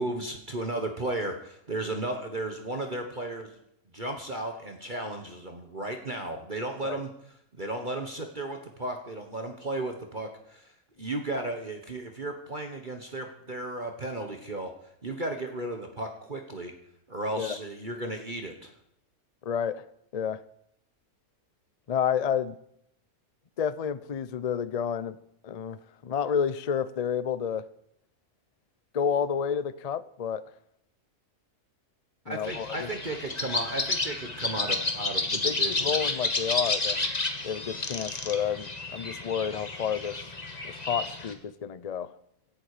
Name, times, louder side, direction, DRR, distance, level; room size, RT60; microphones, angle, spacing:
voice 1, 0.0-3.6 3.9-10.7 11.0-14.7 15.0-16.7 17.1-18.7 32.3-36.0, right 2 dB, 30° right, 4 dB, 1.5 m, -34 dB
voice 2, 19.4-19.8 20.1-20.4 21.9-22.5 23.6-25.2 25.4-25.8 26.0-27.6 28.9-30.4 32.3-32.8 35.4-37.1 37.4-40.2 40.6-42.1, left 7 dB, 60° left, 15 dB, 0.4 m, -30 dB
sound 1, 32.4-41.3, left 3 dB, 25° left, 1.5 m, -31 dB
16.5 x 12.0 x 5.0 m, 0.74 s
omnidirectional pair, 1.6 m